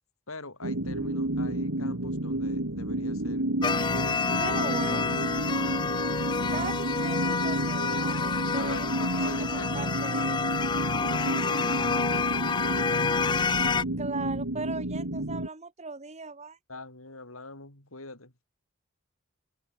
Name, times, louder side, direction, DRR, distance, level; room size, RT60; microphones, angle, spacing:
voice 1, 0.3-4.6 5.3-6.9 8.5-9.9 10.5-10.7 11.0-12.4 12.7-13.2 13.7-14.0 16.7-18.3, left 2 dB, 85° left, 7.0 m, -44 dB
sound 1, 0.6-15.5, right 1 dB, 75° right, 2.7 m, -31 dB
sound 2, 3.6-13.8, left 5 dB, 20° left, 0.3 m, -29 dB
voice 2, 4.4-5.5 6.5-8.9 9.2-10.4 14.0-16.6, right 3 dB, 35° right, 2.0 m, -38 dB
head